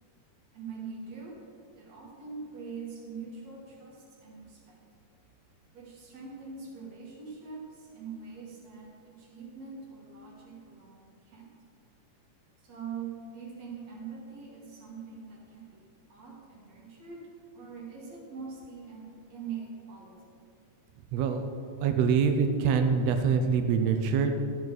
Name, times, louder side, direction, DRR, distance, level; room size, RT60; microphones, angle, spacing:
voice 1, 0.5-1.5 1.8-4.8 5.7-11.5 12.6-17.3 17.5-20.4, right 5 dB, 55° right, -2 dB, 2.8 m, -43 dB
voice 2, 21.1-21.4 21.8-24.4, right 6 dB, 85° right, 6 dB, 1.5 m, -25 dB
12.5 x 9.2 x 4.0 m, 2.5 s
omnidirectional pair, 3.7 m